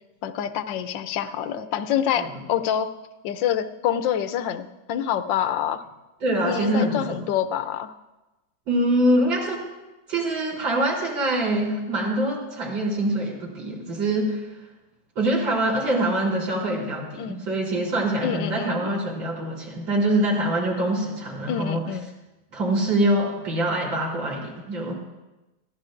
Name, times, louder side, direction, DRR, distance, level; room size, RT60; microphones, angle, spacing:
voice 1, 0.2-2.9 3.2-5.8 6.4-7.9 16.8-17.4 18.2-19.0 21.5-22.1, left 9 dB, 80° left, 10 dB, 1.4 m, -27 dB
voice 2, 6.2-7.3 8.7-9.6 10.1-14.5 15.2-21.8 22.5-24.9, right 1 dB, 90° right, -3 dB, 4.4 m, -24 dB
22.0 x 14.5 x 2.5 m, 1.1 s
omnidirectional pair, 2.0 m